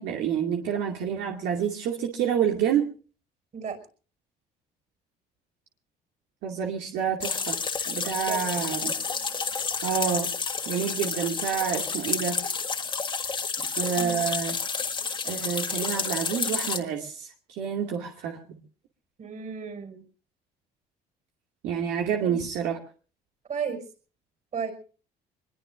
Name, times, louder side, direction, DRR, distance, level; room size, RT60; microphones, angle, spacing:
voice 1, 0.0-2.9 6.4-7.6 7.9-8.9 9.8-10.3 10.7-12.4 13.8-14.6 15.2-18.4 21.6-22.8, right 8 dB, 85° right, 0 dB, 2.3 m, -28 dB
sound 1, 7.2-16.8, left 5 dB, 30° left, 1.8 m, -30 dB
voice 2, 19.2-20.0 22.2-22.3 23.5-23.8 24.5-24.7, right 6 dB, 45° right, 6 dB, 5.5 m, -33 dB
24.5 x 21.5 x 2.6 m, 0.38 s
cardioid pair, 110°, 17 cm